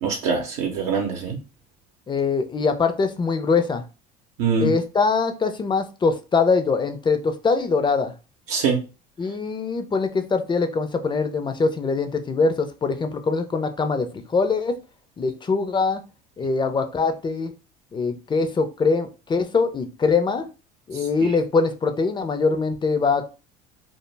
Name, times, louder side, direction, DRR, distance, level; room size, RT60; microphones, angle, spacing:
voice 1, 0.0-1.4 4.4-4.7 8.5-8.8, right 5 dB, 75° right, 0 dB, 0.6 m, -23 dB
voice 2, 2.1-3.8 4.6-8.1 9.2-14.8 15.2-16.0 16.4-17.5 17.9-20.5 20.9-23.3, left 4 dB, 25° left, 8 dB, 0.4 m, -23 dB
2.1 x 2.0 x 3.2 m, 0.31 s
supercardioid pair, 80°, 20 cm